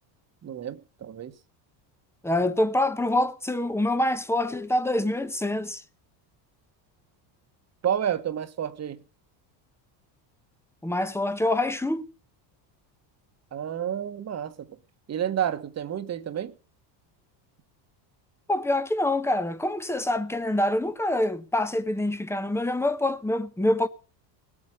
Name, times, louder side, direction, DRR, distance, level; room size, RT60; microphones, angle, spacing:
voice 1, 0.4-1.3 7.8-9.0 13.5-14.7 15.1-16.5, right 9 dB, 30° right, 1.4 m, -30 dB
voice 2, 2.2-5.8 10.8-12.1 18.5-23.9, left 1 dB, 5° left, 1.0 m, -25 dB
19.0 x 8.7 x 6.5 m
cardioid pair, 135°, 50 cm